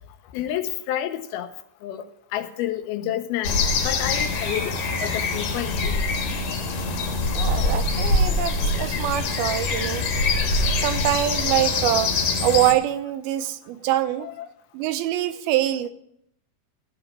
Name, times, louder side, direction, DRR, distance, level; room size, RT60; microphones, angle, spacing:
voice 1, 0.3-1.5 1.8-2.1 2.3-3.6 3.8-6.1 14.2-14.5, left 12 dB, 90° left, 10 dB, 2.7 m, -29 dB
sound 1, 3.4-12.7, left 3 dB, 65° left, 2.9 m, -24 dB
voice 2, 7.3-10.0 10.8-14.3 14.7-15.9, right 13 dB, 90° right, 11 dB, 2.5 m, -24 dB
13.0 x 5.9 x 6.4 m, 0.74 s
omnidirectional pair, 4.3 m